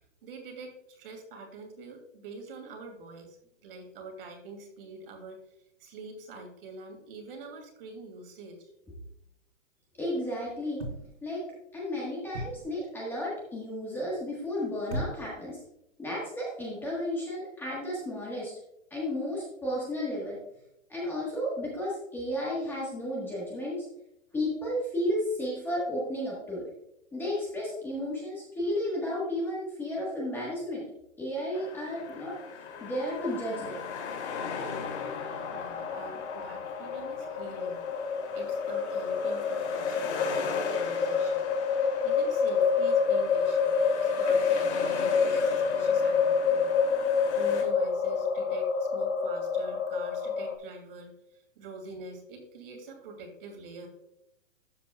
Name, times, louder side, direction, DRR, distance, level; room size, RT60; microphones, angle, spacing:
voice 1, 0.2-3.4 3.6-5.4 5.8-8.7 35.1-35.2 35.5-41.5 42.0-46.7 47.0-47.1 47.3-53.9, right 3 dB, 45° right, 3 dB, 2.7 m, -45 dB
voice 2, 10.0-10.8 11.2-11.4 11.7-15.6 16.0-18.5 18.9-20.4 20.9-23.9 24.3-26.6 27.1-30.8 31.2-32.4 32.8-33.8, left 1 dB, 5° left, -6 dB, 1.4 m, -33 dB
sound 1, 10.8-11.3 12.3-12.8 14.9-15.5 16.3-16.4, right 1 dB, 65° right, 3.6 m, -37 dB
sound 2, 31.5-47.6, left 5 dB, 55° left, 2.8 m, -40 dB
sound 3, 32.7-50.6, left 5 dB, 85° left, 1.6 m, -28 dB
12.5 x 7.4 x 2.3 m, 0.82 s
hypercardioid pair, 165°, 39 cm